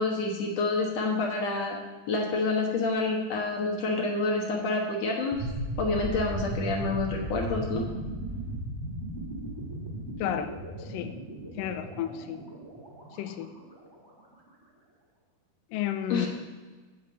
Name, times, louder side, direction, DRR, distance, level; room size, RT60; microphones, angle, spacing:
voice 1, 0.0-1.8 2.1-5.4 5.8-7.8 16.1-16.3, left 3 dB, 60° left, 0 dB, 1.9 m, -28 dB
sound 1, 5.3-14.2, right 1 dB, 10° right, 1.1 m, -37 dB
voice 2, 10.2-10.5 10.9-11.1 11.6-12.4 13.2-13.5 15.7-16.3, left 11 dB, 75° left, 8 dB, 2.1 m, -31 dB
8.0 x 7.0 x 7.8 m, 1.3 s
omnidirectional pair, 4.4 m